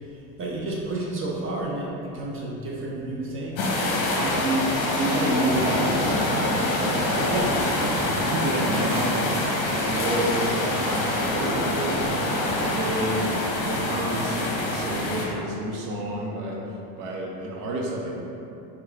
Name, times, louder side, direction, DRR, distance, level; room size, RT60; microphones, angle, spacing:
voice 1, 0.0-3.6 7.2-7.5 8.5-8.6, right 2 dB, 30° right, -4 dB, 0.5 m, -31 dB
sound 1, 3.6-15.2, left 1 dB, 45° left, 0.8 m, -25 dB
voice 2, 4.2-4.7 4.9-7.2 8.0-9.3 9.6-12.3 12.6-18.2, right 1 dB, 65° right, -2 dB, 0.8 m, -29 dB
3.5 x 2.3 x 3.3 m, 2.8 s
supercardioid pair, 95°, 45 cm